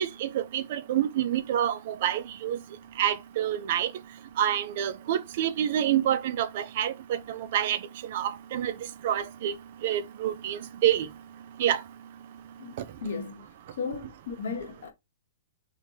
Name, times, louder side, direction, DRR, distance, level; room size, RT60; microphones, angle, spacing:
voice 1, 0.0-2.6 3.0-3.9 4.4-7.8 8.1-8.7 9.0-9.5 9.8-11.1 11.6-11.8, right 10 dB, 40° right, 0.4 m, -27 dB
voice 2, 12.6-13.4 13.8-14.9, left 5 dB, 75° left, 1.0 m, -35 dB
5.0 x 2.2 x 2.7 m
hypercardioid pair, 175°, 0 cm